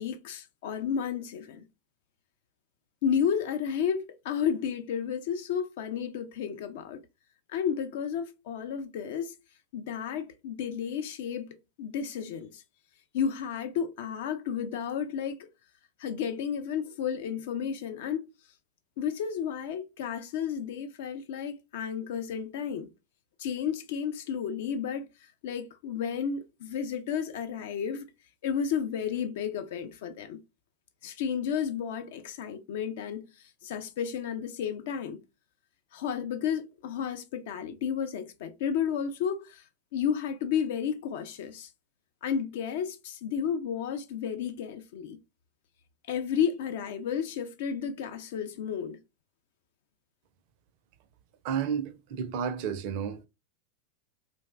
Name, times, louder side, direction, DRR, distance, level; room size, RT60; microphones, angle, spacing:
voice 1, 0.0-1.6 3.0-7.0 7.5-9.3 9.7-12.6 13.1-15.5 16.0-18.2 19.0-22.9 23.4-28.1 28.4-30.4 31.0-35.2 35.9-41.7 42.2-45.2 46.1-49.0, left 7 dB, 55° left, 0.3 m, -32 dB
voice 2, 51.4-53.3, right 7 dB, 45° right, 0.4 m, -31 dB
2.4 x 2.0 x 3.2 m
figure-of-eight pair, 90°, 0 cm